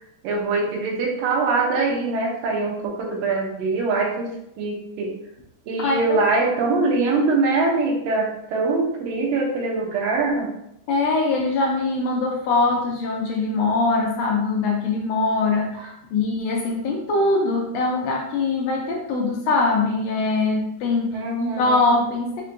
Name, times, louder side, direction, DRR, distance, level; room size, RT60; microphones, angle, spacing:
voice 1, 0.2-5.1 5.7-10.5 21.1-22.0, right 3 dB, 75° right, 0 dB, 1.6 m, -23 dB
voice 2, 5.8-6.2 10.9-21.2 21.6-22.4, left 3 dB, 80° left, 0 dB, 1.5 m, -22 dB
5.0 x 2.2 x 2.6 m, 0.80 s
omnidirectional pair, 3.4 m